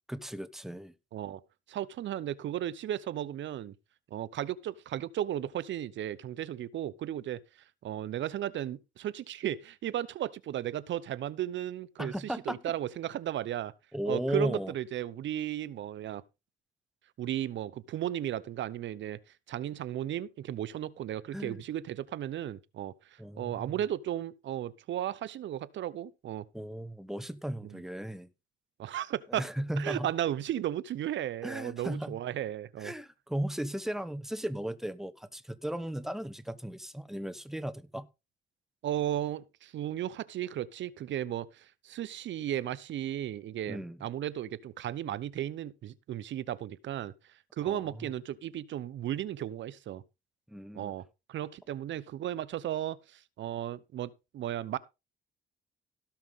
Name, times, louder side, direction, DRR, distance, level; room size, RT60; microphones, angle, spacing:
voice 1, 0.1-0.9 12.0-12.6 13.9-14.7 21.3-21.6 23.2-23.7 26.5-28.3 29.3-30.1 31.4-32.2 32.8-38.1 43.7-44.0 47.6-48.0 50.5-50.9, right 1 dB, ahead, 1.2 m, -36 dB
voice 2, 1.7-3.7 4.1-7.4 7.8-13.7 14.1-16.2 17.2-19.2 19.5-26.4 28.8-29.5 29.8-32.9 38.8-47.1 47.6-50.0 50.7-54.8, right 11 dB, 70° right, 0.8 m, -35 dB
17.5 x 5.9 x 3.7 m
cardioid pair, 90°, 20 cm